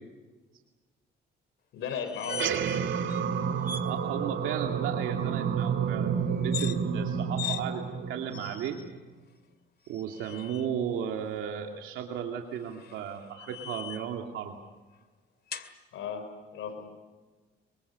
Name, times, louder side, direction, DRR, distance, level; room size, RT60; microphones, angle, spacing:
voice 1, 1.7-2.6 15.9-16.2 16.5-16.9, left 7 dB, 85° left, 7 dB, 5.4 m, -35 dB
sound 1, 1.9-2.8 3.1-3.2 3.6-3.9 6.4-6.8 7.4-7.6 8.3-8.9 9.9-10.7 12.6-14.2 15.5-15.7, left 8 dB, 55° left, 2.3 m, -39 dB
sound 2, 2.2-9.0, right 7 dB, 75° right, 2.6 m, -30 dB
voice 2, 3.8-8.8 9.9-14.6, right 8 dB, 90° right, 2 dB, 2.6 m, -35 dB
26.0 x 24.5 x 7.0 m, 1.2 s
cardioid pair, 90°, 20 cm